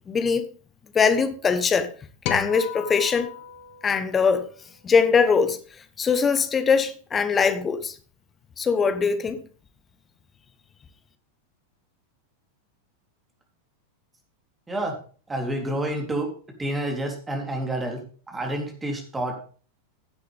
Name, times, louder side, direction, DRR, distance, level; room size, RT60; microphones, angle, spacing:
voice 1, 0.1-0.4 0.9-1.9 2.3-3.3 3.8-4.5 4.8-5.6 6.0-8.0 8.6-9.4, left 5 dB, 20° left, 1.3 m, -21 dB
sound 1, 2.2-4.7, left 10 dB, 45° left, 1.5 m, -35 dB
voice 2, 14.7-15.0 15.3-16.3 16.6-19.5, right 1 dB, 10° right, 3.6 m, -29 dB
16.5 x 8.5 x 3.6 m
figure-of-eight pair, 90°, 0 cm